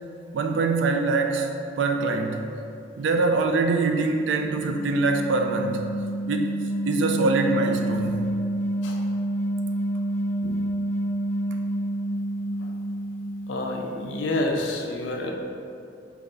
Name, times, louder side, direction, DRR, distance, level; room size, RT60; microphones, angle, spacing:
voice 1, 0.3-1.5 1.8-2.5 3.0-5.9 6.3-6.5 6.8-8.3, right 3 dB, 75° right, 4 dB, 0.3 m, -24 dB
sound 1, 4.0-14.1, right 1 dB, 30° right, 0.7 m, -29 dB
voice 2, 13.5-15.3, left 2 dB, 75° left, 1 dB, 0.4 m, -28 dB
3.2 x 2.3 x 3.7 m, 2.5 s
head